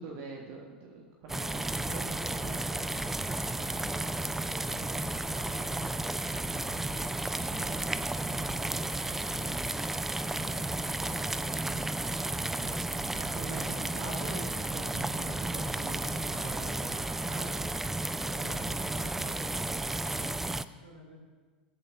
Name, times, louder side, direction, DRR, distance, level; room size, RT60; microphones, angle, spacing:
voice 1, 0.0-2.1 5.3-5.8 13.2-17.6, right 3 dB, 45° right, 0 dB, 1.3 m, -44 dB
sound 1, 1.3-20.6, right 2 dB, 5° right, 0.3 m, -33 dB
voice 2, 1.8-9.6 10.0-15.2 18.2-21.2, left 1 dB, 85° right, -1 dB, 2.4 m, -51 dB
21.5 x 8.6 x 2.6 m, 1.4 s
figure-of-eight pair, 90°, 5 cm